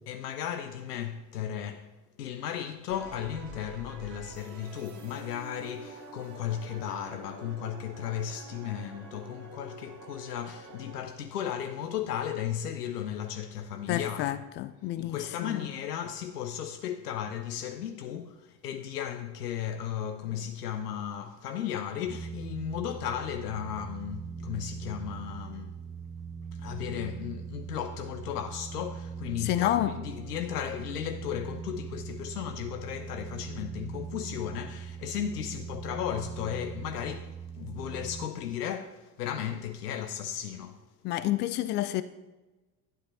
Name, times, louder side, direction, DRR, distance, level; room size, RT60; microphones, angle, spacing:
voice 1, 0.0-1.9 2.2-14.4 15.0-25.8 26.5-40.9, left 9 dB, 70° left, 0.8 m, -35 dB
sound 1, 2.9-11.0, right 3 dB, 35° right, 2.5 m, -47 dB
voice 2, 13.9-15.7 29.4-29.9 41.0-42.0, left 14 dB, 25° left, 0.3 m, -29 dB
sound 2, 22.1-38.3, right 6 dB, 10° right, 0.8 m, -41 dB
12.0 x 9.5 x 4.0 m
figure-of-eight pair, 70°, 49 cm